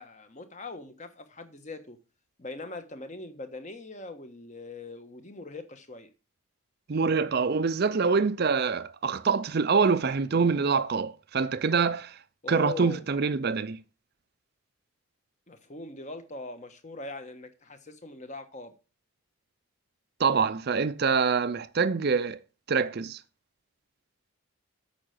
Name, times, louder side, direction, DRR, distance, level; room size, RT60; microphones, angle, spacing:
voice 1, 0.0-2.0 2.4-6.1 12.4-13.1 15.5-18.7, left 3 dB, 35° left, 1.2 m, -41 dB
voice 2, 6.9-12.2 12.5-13.8 20.2-22.4 22.7-23.2, right 5 dB, 50° right, 0.5 m, -25 dB
8.6 x 5.7 x 6.5 m
head